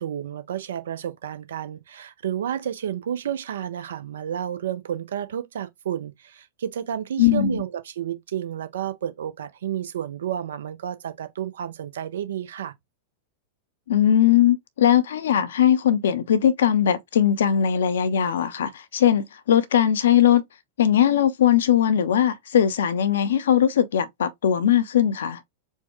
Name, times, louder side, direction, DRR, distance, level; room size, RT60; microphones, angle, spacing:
voice 1, 0.0-12.7, right 10 dB, 60° right, 0.5 m, -31 dB
voice 2, 7.2-7.6 13.9-20.4 20.8-25.4, left 10 dB, 65° left, 0.5 m, -20 dB
4.5 x 2.1 x 3.1 m
figure-of-eight pair, 90°, 0 cm